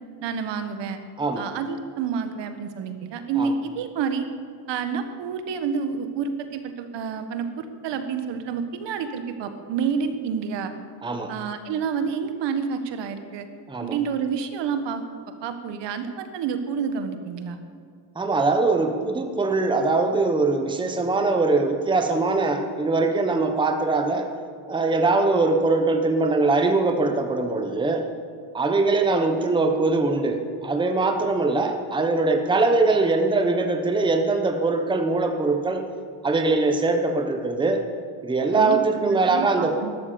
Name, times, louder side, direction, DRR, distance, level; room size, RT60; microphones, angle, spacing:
voice 1, 0.2-1.0 1.4-4.3 4.7-10.7 11.3-13.5 13.8-15.0 15.4-17.6 38.5-39.9, right 6 dB, 60° right, 8 dB, 1.5 m, -29 dB
voice 2, 1.2-1.5 3.4-3.5 11.0-11.3 13.7-14.0 18.1-24.3 24.7-28.1 28.5-35.8 36.2-37.8 38.2-39.8, right 3 dB, 10° right, 5 dB, 1.1 m, -22 dB
13.0 x 12.0 x 7.0 m, 2.1 s
cardioid pair, 125°, 47 cm